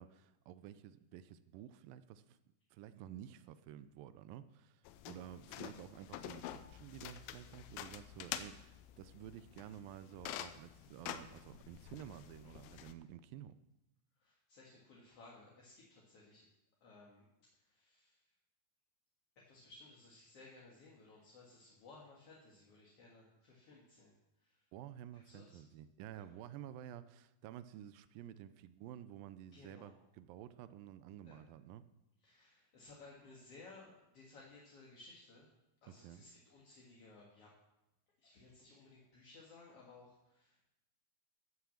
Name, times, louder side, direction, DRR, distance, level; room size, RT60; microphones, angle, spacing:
voice 1, 0.0-2.4 2.7-13.6 24.7-31.8 35.9-36.2, right 11 dB, 80° right, 13 dB, 2.2 m, -52 dB
sound 1, 4.9-12.9, left 11 dB, 85° left, 2.4 m, -48 dB
voice 2, 14.2-16.5 16.8-18.3 19.4-24.7 25.1-25.6 26.1-26.4 29.5-29.9 31.2-31.4 32.2-35.5 35.8-37.5 38.2-40.7, left 3 dB, 50° left, -4 dB, 2.2 m, -59 dB
13.0 x 6.1 x 7.2 m, 0.90 s
omnidirectional pair, 4.3 m